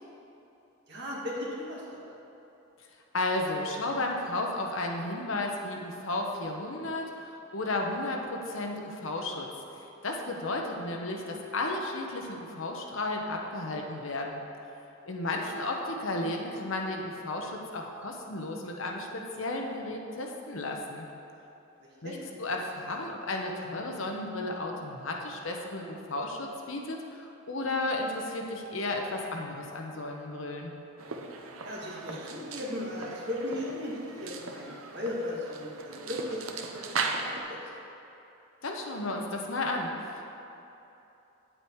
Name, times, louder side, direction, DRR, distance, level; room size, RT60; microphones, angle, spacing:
voice 1, 0.9-2.0 15.5-15.6 21.8-22.2 31.6-37.8, left 1 dB, 50° right, -5 dB, 2.0 m, -37 dB
voice 2, 3.1-9.5 10.0-14.4 15.0-21.1 22.0-30.7 38.6-40.2, left 2 dB, 65° left, 1 dB, 1.0 m, -33 dB
sound 1, 31.0-37.4, right 4 dB, 70° right, 0.7 m, -38 dB
9.6 x 7.8 x 4.7 m, 2.9 s
head